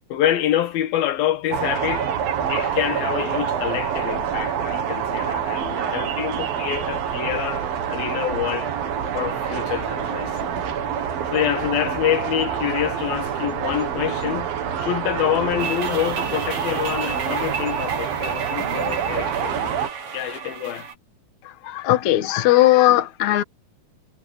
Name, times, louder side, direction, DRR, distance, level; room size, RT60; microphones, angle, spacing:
voice 1, 0.1-2.1 2.5-8.7 9.1-10.5 11.3-14.5 14.8-19.8 20.1-20.9, left 11 dB, 85° left, 3.3 m, -26 dB
sound 1, 1.5-19.9, right 8 dB, 80° right, 3.9 m, -26 dB
sound 2, 15.6-20.9, right 6 dB, 65° right, 6.6 m, -33 dB
voice 2, 21.6-23.4, left 15 dB, 60° left, 2.5 m, -17 dB
omnidirectional pair, 4.1 m